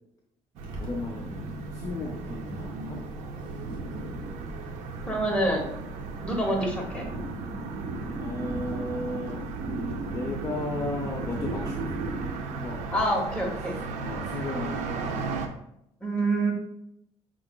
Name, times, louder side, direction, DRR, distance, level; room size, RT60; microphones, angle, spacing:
sound 1, 0.6-12.3, right 2 dB, 45° right, 1.5 m, -38 dB
sound 2, 0.6-15.5, right 4 dB, 85° right, 0.6 m, -36 dB
voice 1, 0.8-3.0 8.1-9.5 10.1-12.0 12.5-12.9 14.0-15.2, left 2 dB, 30° left, 1 dB, 0.6 m, -35 dB
voice 2, 5.1-5.7 6.2-7.1 12.9-13.8 16.0-16.5, right 1 dB, 10° left, -2 dB, 1.4 m, -26 dB
5.6 x 3.8 x 2.2 m, 0.78 s
cardioid pair, 105°, 12 cm